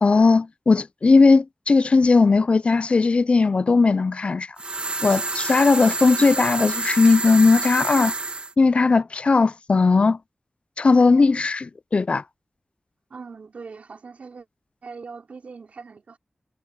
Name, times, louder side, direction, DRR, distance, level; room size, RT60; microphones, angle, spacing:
voice 1, 0.0-4.5 5.0-8.1 8.6-10.2 10.8-12.2, left 4 dB, 55° left, 0.4 m, -18 dB
sound 1, 4.6-8.5, right 3 dB, 55° right, 2.1 m, -28 dB
voice 2, 13.1-14.5 14.8-16.2, right 4 dB, 85° right, 4.1 m, -41 dB
wide cardioid pair, 70°, 2 cm